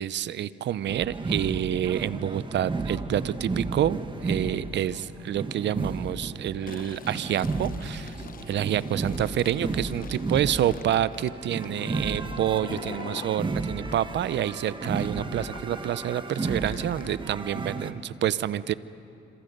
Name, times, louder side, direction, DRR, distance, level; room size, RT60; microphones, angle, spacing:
voice 1, 0.0-8.1 8.5-18.7, right 11 dB, 65° right, 17 dB, 0.7 m, -28 dB
sound 1, 0.9-17.9, right 3 dB, 25° right, 1.6 m, -33 dB
Fill (with liquid), 6.5-13.3 13.8-17.2, left 7 dB, 45° left, 1.1 m, -45 dB
27.5 x 26.5 x 5.4 m, 2.6 s
cardioid pair, 90°, 20 cm